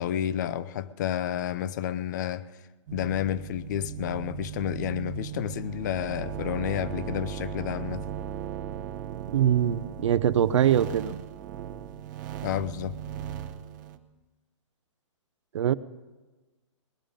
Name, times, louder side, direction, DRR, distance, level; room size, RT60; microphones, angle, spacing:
voice 1, 0.0-2.5 2.9-8.1 12.4-13.0, left 10 dB, 35° left, 0.5 m, -30 dB
sound 1, 2.9-14.0, right 9 dB, 35° right, 0.9 m, -37 dB
voice 2, 9.3-11.2 15.5-15.7, right 10 dB, 65° right, 0.6 m, -23 dB
19.5 x 11.0 x 5.2 m
hypercardioid pair, 165°, 16 cm